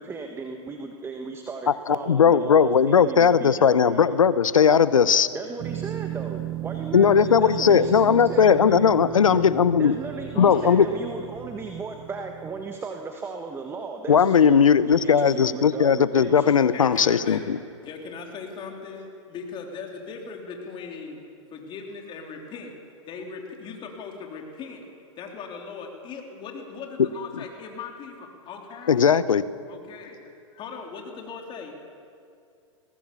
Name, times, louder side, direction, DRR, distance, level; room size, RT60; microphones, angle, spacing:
voice 1, 0.0-4.1 5.3-8.8 9.3-14.5 14.9-16.5, right 4 dB, 15° right, 4 dB, 1.3 m, -36 dB
voice 2, 1.9-5.3 6.9-9.9 10.4-10.9 14.1-17.6 28.9-29.4, left 7 dB, 85° left, 16 dB, 0.8 m, -18 dB
sound 1, 5.6-12.8, right 16 dB, 30° right, 0.7 m, -36 dB
voice 3, 10.3-10.8 16.7-17.4 17.8-21.2 21.5-22.7 23.1-24.9 25.2-29.1 29.7-31.9, left 5 dB, 30° left, 2 dB, 3.5 m, -39 dB
21.5 x 17.5 x 7.0 m, 2.4 s
hypercardioid pair, 115°, 17 cm